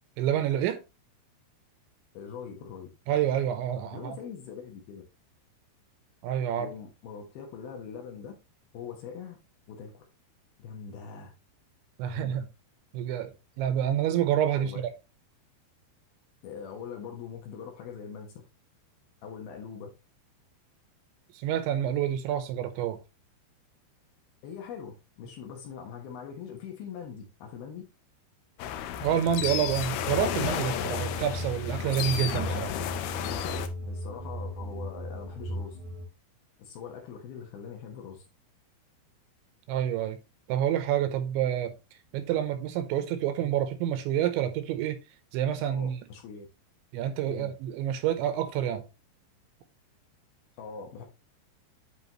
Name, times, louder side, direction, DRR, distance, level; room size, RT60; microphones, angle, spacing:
voice 1, 0.2-0.8 3.1-4.2 6.2-6.7 12.0-12.5 12.9-14.7 21.3-23.0 29.0-32.7 39.7-40.2 40.5-41.7 42.1-45.0 45.3-46.0 46.9-48.8, right 10 dB, 80° right, 3.1 m, -28 dB
voice 2, 2.1-2.9 3.9-5.0 6.6-8.3 8.7-9.4 9.7-10.0 10.6-11.3 12.0-12.4 14.6-14.8 16.4-18.4 19.2-19.9 24.4-27.8 33.8-35.8 36.6-38.2 45.7-46.5 47.3-47.6 50.6-51.1, left 7 dB, 65° left, 2.8 m, -42 dB
sound 1, 28.6-33.7, left 10 dB, 80° left, 2.2 m, -32 dB
sound 2, 29.2-36.1, equal, 5° right, 1.8 m, -37 dB
9.8 x 4.9 x 3.0 m
omnidirectional pair, 5.4 m